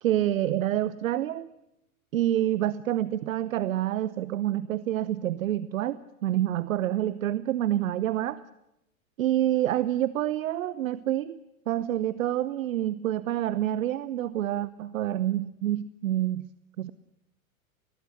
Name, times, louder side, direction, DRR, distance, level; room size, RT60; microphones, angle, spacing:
voice 1, 0.0-1.5 2.1-8.4 9.2-11.4 11.7-16.5 16.8-16.9, right 12 dB, 65° right, 17 dB, 0.9 m, -27 dB
22.0 x 19.0 x 9.8 m, 0.86 s
figure-of-eight pair, 95°, 42 cm